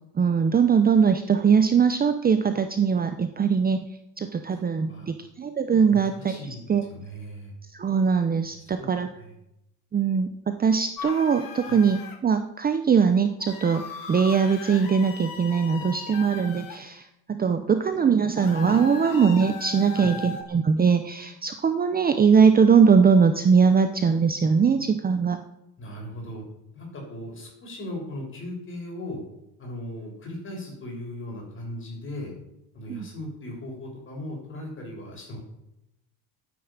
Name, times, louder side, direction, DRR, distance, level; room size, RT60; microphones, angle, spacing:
voice 1, 0.2-3.8 4.2-6.4 6.7-6.8 7.7-9.1 9.9-25.4 32.9-33.1, right 6 dB, 20° right, 8 dB, 0.8 m, -21 dB
voice 2, 6.3-7.5 8.5-8.9 9.2-9.4 11.6-11.8 19.9-20.1 25.8-26.4 26.7-29.2 29.6-32.3 32.7-35.4, left 1 dB, 30° left, -1 dB, 7.0 m, -38 dB
sound 1, 11.0-12.2 13.4-16.8 18.4-20.4, left 6 dB, 50° left, 2.6 m, -38 dB
13.5 x 9.9 x 8.8 m, 0.84 s
cardioid pair, 160°, 42 cm